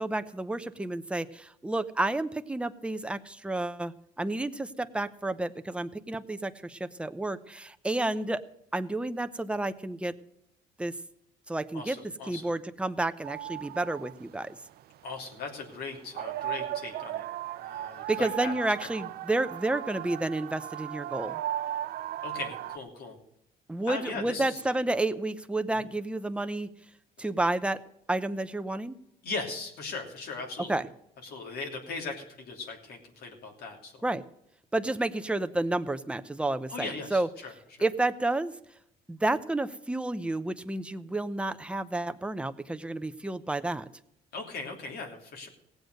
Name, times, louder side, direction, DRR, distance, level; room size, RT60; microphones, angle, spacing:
voice 1, 0.0-8.4 8.7-10.1 10.8-10.9 11.5-12.0 12.3-14.6 18.1-21.4 23.7-26.7 27.2-27.8 28.1-29.0 30.7-30.9 34.0-34.2 34.7-37.3 37.8-38.5 39.1-43.8, right 2 dB, 5° right, 10 dB, 0.7 m, -30 dB
voice 2, 11.7-12.4 15.0-17.3 17.6-18.5 22.2-23.2 23.9-24.6 25.7-25.9 29.2-30.8 31.2-34.0 36.7-37.5 44.3-45.5, left 4 dB, 65° left, 2 dB, 3.1 m, -38 dB
sound 1, 13.2-14.8 15.0-15.7 16.0-22.8, right 12 dB, 70° right, 0.6 m, -36 dB
17.0 x 8.0 x 6.6 m, 0.78 s
cardioid pair, 110°, 17 cm